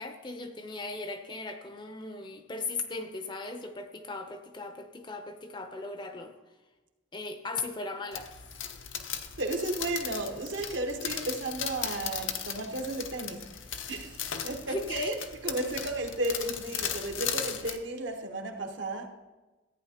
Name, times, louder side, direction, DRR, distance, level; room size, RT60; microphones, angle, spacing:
voice 1, 0.0-6.3 7.1-8.3 14.7-15.2, left 3 dB, 25° left, 7 dB, 0.6 m, -38 dB
sound 1, 8.1-17.8, left 8 dB, 75° left, 0.7 m, -37 dB
voice 2, 9.4-13.5 13.9-15.2 15.4-19.1, right 2 dB, 65° right, 4 dB, 1.0 m, -33 dB
14.5 x 9.0 x 2.8 m, 1.2 s
head